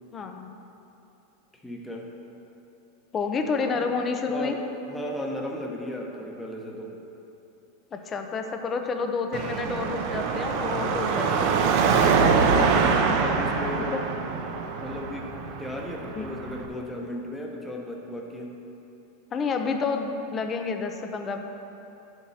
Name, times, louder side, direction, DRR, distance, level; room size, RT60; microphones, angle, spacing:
voice 1, 0.1-0.6 3.1-4.6 7.9-11.8 13.9-14.0 16.2-16.3 19.3-21.4, left 4 dB, 25° left, 5 dB, 0.6 m, -29 dB
voice 2, 1.6-2.1 3.7-3.8 4.3-4.6 4.9-6.9 12.5-13.9 14.8-18.5, left 1 dB, 5° left, -1 dB, 1.0 m, -35 dB
Car passing by / Traffic noise roadway noise / Engine, 9.3-16.7, right 5 dB, 55° right, 0.7 m, -24 dB
10.5 x 7.1 x 2.8 m, 2.9 s
supercardioid pair, 135°, 0 cm